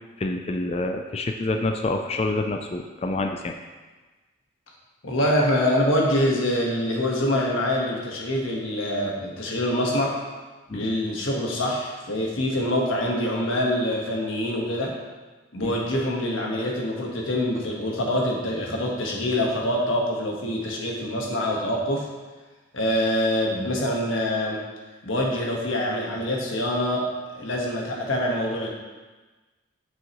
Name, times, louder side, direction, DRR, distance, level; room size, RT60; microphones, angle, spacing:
voice 1, 0.2-3.5 10.7-10.9 15.6-15.7, left 2 dB, 30° left, 4 dB, 0.3 m, -27 dB
voice 2, 5.0-10.1 10.7-14.9 15.5-22.1 22.7-24.6 25.0-27.0 27.3-28.7, left 1 dB, 75° left, -1 dB, 1.4 m, -25 dB
7.5 x 6.3 x 3.0 m, 1.2 s
head